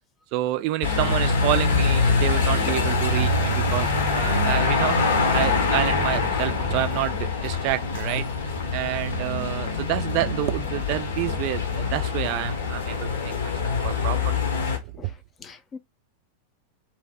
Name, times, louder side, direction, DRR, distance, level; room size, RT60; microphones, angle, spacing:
voice 1, 0.3-5.0 5.3-8.3 8.7-14.4 14.8-14.9, right 15 dB, 45° right, 0.3 m, -28 dB
sound 1, 0.8-14.8, left 4 dB, 65° left, 0.7 m, -24 dB
voice 2, 15.4-15.8, left 5 dB, 25° left, 0.5 m, -42 dB
2.6 x 2.0 x 3.4 m
figure-of-eight pair, 90°, 0 cm